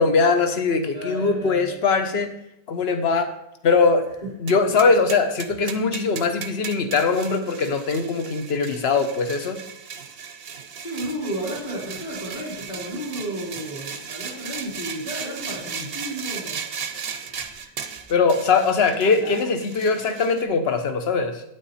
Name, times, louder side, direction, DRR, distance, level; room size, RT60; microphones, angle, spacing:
voice 1, 0.0-2.3 2.7-3.3 3.6-4.1 4.4-9.6 18.1-21.4, left 4 dB, 45° left, 8 dB, 1.1 m, -21 dB
voice 2, 0.9-1.8 4.2-4.8 10.7-16.7 17.0-17.8 19.2-19.4, right 1 dB, 25° left, -5 dB, 3.7 m, -33 dB
sound 1, 4.5-20.4, right 7 dB, 50° right, 0.8 m, -36 dB
9.4 x 8.9 x 4.2 m, 0.81 s
omnidirectional pair, 1.6 m